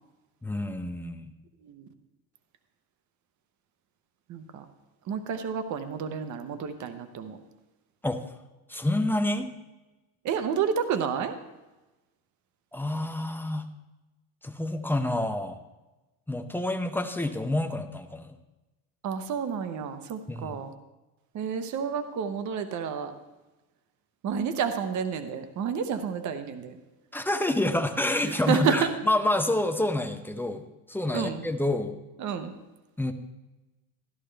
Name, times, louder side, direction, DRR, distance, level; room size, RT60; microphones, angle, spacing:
voice 1, 0.4-1.3 8.0-8.2 8.7-9.5 12.7-13.7 14.4-15.6 16.3-18.4 20.3-20.7 27.1-30.6 30.9-32.0 33.0-33.1, left 1 dB, 5° left, 6 dB, 0.4 m, -28 dB
voice 2, 4.3-4.6 5.1-7.4 10.2-11.3 19.0-20.7 21.3-23.1 24.2-26.8 28.2-28.9 31.1-31.4 32.2-32.5, right 7 dB, 40° right, 9 dB, 0.9 m, -30 dB
13.5 x 11.0 x 3.3 m, 1.1 s
cardioid pair, 145°, 43 cm